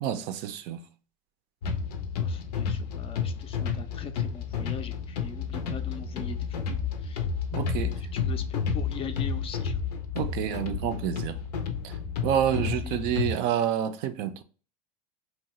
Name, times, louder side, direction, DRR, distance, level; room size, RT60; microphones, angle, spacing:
voice 1, 0.0-0.8 7.5-7.9 10.1-11.4 11.8-12.0 12.2-14.4, right 10 dB, 55° right, 0.4 m, -28 dB
sound 1, 1.6-13.3, left 6 dB, 85° left, 0.5 m, -31 dB
voice 2, 2.2-7.3 7.6-9.8 12.3-12.9, left 6 dB, 30° left, 0.4 m, -42 dB
2.8 x 2.1 x 2.9 m
hypercardioid pair, 95°, 20 cm